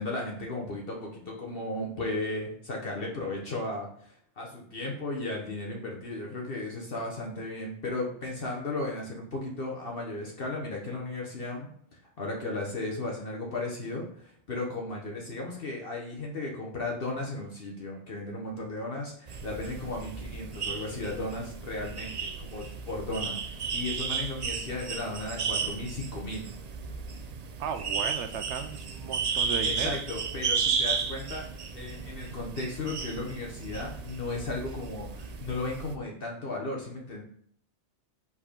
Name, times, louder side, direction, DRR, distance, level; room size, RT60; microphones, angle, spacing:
voice 1, 0.0-26.4 29.6-37.2, left 2 dB, 55° left, -1 dB, 1.2 m, -35 dB
sound 1, 19.3-35.9, right 5 dB, 45° right, 0.6 m, -34 dB
voice 2, 27.6-30.0, right 7 dB, 80° right, 8 dB, 0.9 m, -35 dB
5.0 x 4.2 x 5.0 m, 0.65 s
omnidirectional pair, 1.2 m